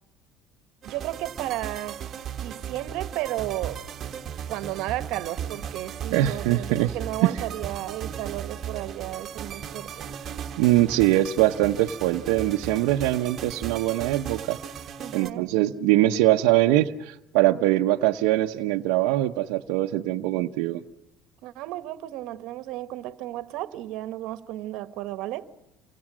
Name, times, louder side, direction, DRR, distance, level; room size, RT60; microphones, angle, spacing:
sound 1, 0.8-15.3, right 8 dB, 40° right, 1.7 m, -36 dB
voice 1, 0.8-2.0 2.4-3.8 4.5-10.1 15.0-15.5 21.4-25.5, right 15 dB, 70° right, 1.3 m, -33 dB
voice 2, 6.1-6.9 7.2-7.3 10.6-14.6 15.1-20.8, right 15 dB, 85° right, 0.9 m, -22 dB
28.5 x 25.0 x 6.2 m
cardioid pair, 140°, 0 cm